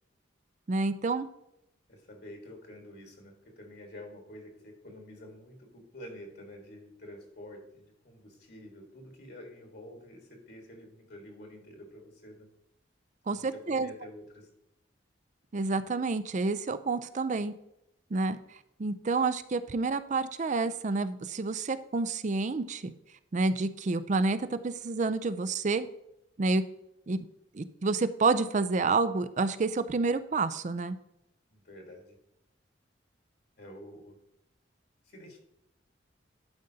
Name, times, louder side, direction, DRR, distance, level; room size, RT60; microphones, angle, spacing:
voice 1, 0.7-1.3 13.3-13.9 15.5-17.5 18.1-18.4 18.8-22.9 23.3-25.9 26.4-26.6 27.1-27.3 27.5-31.0, right 3 dB, 40° right, 13 dB, 0.5 m, -29 dB
voice 2, 1.9-12.5 13.3-14.5 31.5-32.2 33.6-34.2 35.0-35.4, left 1 dB, 60° left, 2 dB, 1.6 m, -48 dB
11.5 x 5.1 x 2.8 m, 0.82 s
head